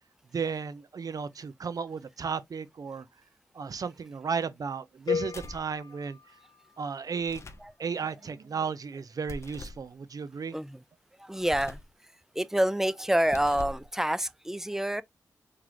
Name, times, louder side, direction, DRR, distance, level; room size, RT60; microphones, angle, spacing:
voice 1, 0.3-3.1 3.5-6.2 6.8-7.4 7.8-10.6, right 6 dB, 60° right, 0.6 m, -34 dB
sound 1, 5.1-7.1, left 7 dB, 75° left, 0.4 m, -35 dB
sound 2, 5.3-5.7 7.2-7.7 9.2-9.9 11.4-11.9 13.2-13.9, left 2 dB, 40° left, 0.7 m, -43 dB
voice 2, 10.5-10.8 11.2-11.8 12.3-15.0, right 1 dB, 5° right, 0.4 m, -27 dB
3.9 x 3.2 x 2.9 m
cardioid pair, 50°, 7 cm